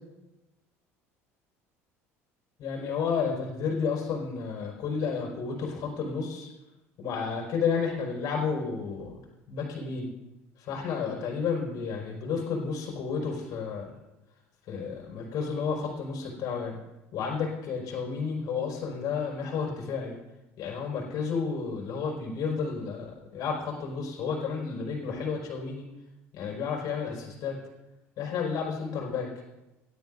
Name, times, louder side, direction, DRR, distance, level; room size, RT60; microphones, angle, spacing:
voice 1, 2.6-6.5 7.0-9.2 9.5-10.1 10.6-13.9 14.7-16.8 17.1-20.2 20.6-25.8 26.3-27.6 28.2-29.3, left 5 dB, 55° left, -1 dB, 4.7 m, -31 dB
17.5 x 12.0 x 2.5 m, 0.98 s
hypercardioid pair, 65°, 8 cm